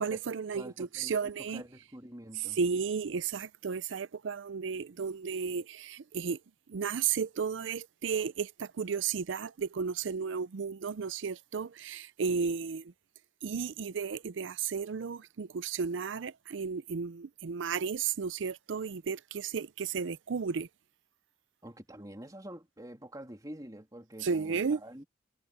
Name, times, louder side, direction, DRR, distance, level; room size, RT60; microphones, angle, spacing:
voice 1, 0.0-1.6 2.4-6.4 6.7-12.9 13.4-20.7 24.2-24.8, right 6 dB, 70° right, 0.5 m, -33 dB
voice 2, 0.5-2.6 21.6-25.1, right 1 dB, 20° right, 3.1 m, -47 dB
head